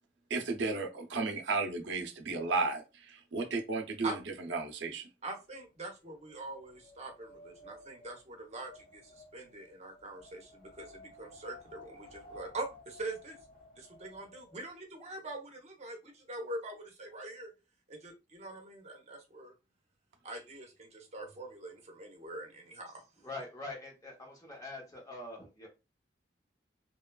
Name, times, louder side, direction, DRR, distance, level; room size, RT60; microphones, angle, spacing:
voice 1, 0.3-4.1 4.5-5.1, right 3 dB, 85° right, 0.6 m, -33 dB
voice 2, 5.2-13.4 13.8-17.5 17.9-19.5 20.2-23.0, right 2 dB, 40° right, 0.7 m, -43 dB
Wind, 5.5-14.7, left 1 dB, 50° left, 1.0 m, -56 dB
voice 3, 23.2-25.7, left 2 dB, 20° left, 0.8 m, -44 dB
2.9 x 2.3 x 2.2 m
head